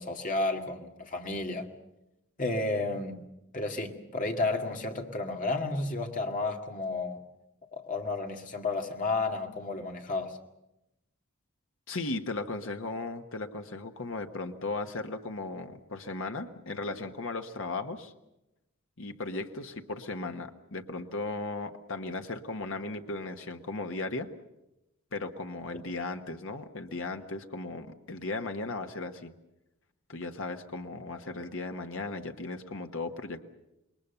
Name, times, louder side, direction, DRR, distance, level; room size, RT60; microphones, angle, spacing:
voice 1, 0.0-1.7 2.4-3.2 3.5-7.2 7.7-10.4, left 2 dB, 35° left, 2.1 m, -32 dB
voice 2, 11.9-18.1 19.0-24.3 25.1-29.3 30.1-33.4, left 3 dB, 60° left, 1.3 m, -36 dB
27.5 x 21.5 x 6.9 m
head